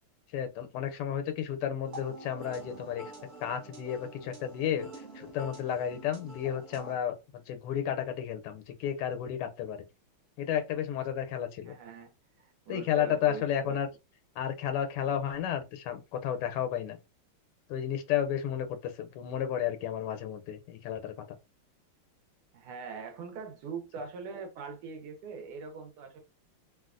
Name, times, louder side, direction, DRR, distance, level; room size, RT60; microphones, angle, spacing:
voice 1, 0.3-3.1 3.4-4.9 5.1-7.1 7.5-9.8 10.4-11.7 12.7-13.9 14.4-17.0 17.7-21.4, left 9 dB, 85° left, 1.5 m, -32 dB
sound 1, 1.8-7.0, right 2 dB, 55° right, 0.8 m, -47 dB
voice 2, 11.7-12.1 12.4-13.8 22.5-26.2, right 5 dB, 80° right, 1.7 m, -42 dB
3.8 x 2.3 x 2.4 m
omnidirectional pair, 2.4 m